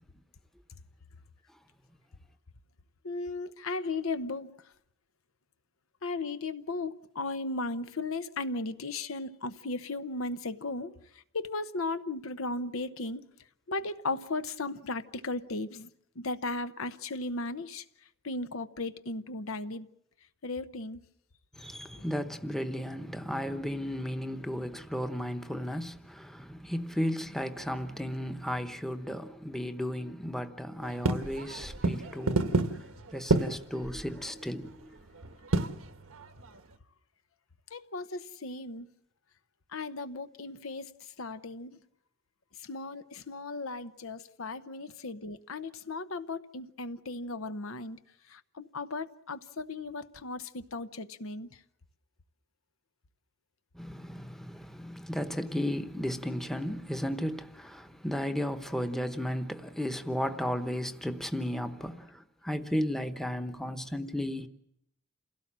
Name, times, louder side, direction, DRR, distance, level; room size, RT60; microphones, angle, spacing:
voice 1, 3.0-4.5 6.0-13.3 13.7-15.9 16.2-17.8 18.2-19.9 20.4-21.0 21.9-22.1 37.7-38.9 39.7-41.8 42.6-48.0 48.3-51.5, left 3 dB, 80° left, 0.9 m, -36 dB
voice 2, 21.6-32.7 33.1-35.0 53.7-64.5, equal, ahead, 0.9 m, -34 dB
sound 1, 30.8-36.8, right 2 dB, 90° right, 1.3 m, -31 dB
28.0 x 17.0 x 7.5 m
head